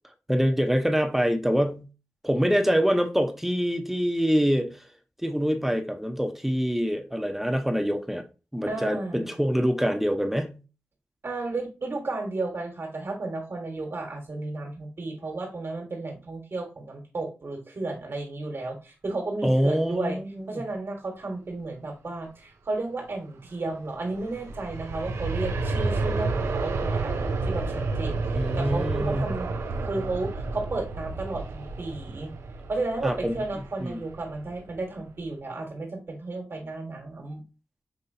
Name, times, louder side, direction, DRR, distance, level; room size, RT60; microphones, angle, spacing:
voice 1, 0.3-1.9 2.2-4.8 5.2-8.2 8.5-10.6 19.4-20.7 28.3-29.3 33.0-33.4 33.8-34.0, equal, 5° right, 0.8 m, -25 dB
voice 2, 8.7-9.3 11.2-20.2 20.5-29.5 29.8-32.3 32.7-37.4, right 2 dB, 60° right, 1.5 m, -33 dB
Aircraft, 23.9-34.8 35.2-35.3, right 3 dB, 90° right, 0.6 m, -30 dB
5.6 x 3.0 x 2.7 m
cardioid pair, 50°, 5 cm